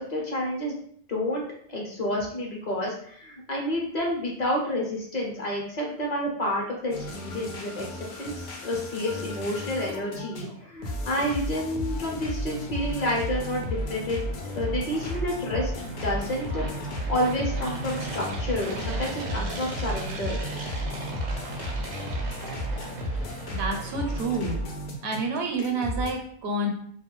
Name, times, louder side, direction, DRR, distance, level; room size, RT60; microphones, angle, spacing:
voice 1, 0.1-0.7 1.1-1.4 1.7-14.2 14.6-20.4, left 1 dB, 50° left, -2 dB, 0.7 m, -29 dB
sound 1, 6.9-26.1, equal, 90° left, 0.8 m, -33 dB
sound 2, 12.4-24.7, right 2 dB, 55° right, 0.5 m, -39 dB
voice 2, 23.5-24.6 25.0-26.7, right 2 dB, 80° right, 3 dB, 0.8 m, -28 dB
2.3 x 2.2 x 3.0 m, 0.63 s
omnidirectional pair, 1.0 m